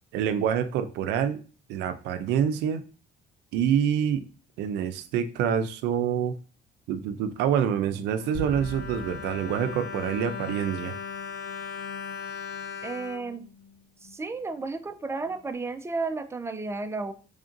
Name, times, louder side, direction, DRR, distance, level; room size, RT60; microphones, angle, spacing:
voice 1, 0.1-1.4 1.7-2.8 3.5-4.2 4.6-6.4 6.9-11.0, right 8 dB, 85° right, 9 dB, 0.5 m, -26 dB
Bowed string instrument, 7.9-14.2 14.9-15.0 15.2-15.4, left 6 dB, 80° left, 0.5 m, -38 dB
sound 1, 8.3-11.0, equal, 35° left, 1.2 m, -42 dB
voice 2, 12.8-13.4 14.0-17.1, right 3 dB, 15° right, 9 dB, 0.4 m, -33 dB
3.4 x 2.6 x 3.7 m, 0.36 s
cardioid pair, 110°, 17 cm